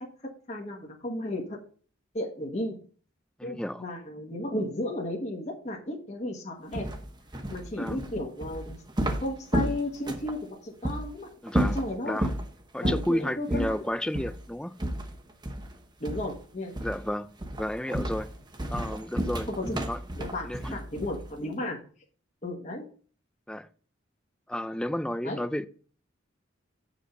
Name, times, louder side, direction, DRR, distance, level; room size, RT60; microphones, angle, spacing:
voice 1, 0.5-1.6 2.1-2.7 3.4-6.9 7.5-8.8 9.2-11.3 11.7-12.2 12.8-13.7 16.0-16.7 19.6-19.8 20.2-21.8 22.4-22.9 25.2-25.4, left 1 dB, 35° left, 1.5 m, -34 dB
voice 2, 3.4-3.8 7.8-8.0 11.4-11.8 12.1-12.4 12.7-14.7 16.8-18.3 18.7-20.0 20.4-20.8 23.5-23.7 24.5-25.7, left 1 dB, 5° left, 0.4 m, -32 dB
sound 1, 6.7-10.4 10.8-11.0 11.5-12.4 12.8-13.1 13.5-13.7 14.1-14.4 14.8-15.8 16.0-16.4 16.7-17.1 17.4-21.3, right 1 dB, 20° right, 1.0 m, -31 dB
8.2 x 5.2 x 5.1 m
head